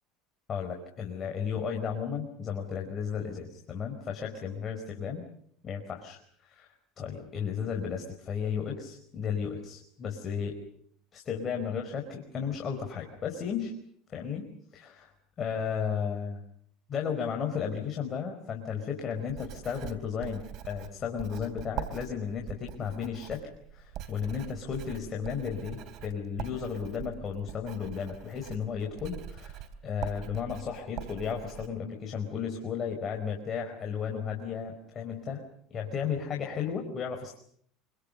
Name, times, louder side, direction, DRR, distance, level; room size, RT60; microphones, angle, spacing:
voice 1, 0.5-5.2 5.6-6.7 7.0-10.6 11.1-13.8 14.1-14.5 14.7-15.1 15.4-16.4 16.9-35.4 35.7-37.4, left 7 dB, 40° left, 3 dB, 4.7 m, -34 dB
Writing, 19.2-31.7, right 9 dB, 60° right, 3.2 m, -43 dB
26.5 x 25.0 x 6.8 m, 0.64 s
hypercardioid pair, 90°, 0 cm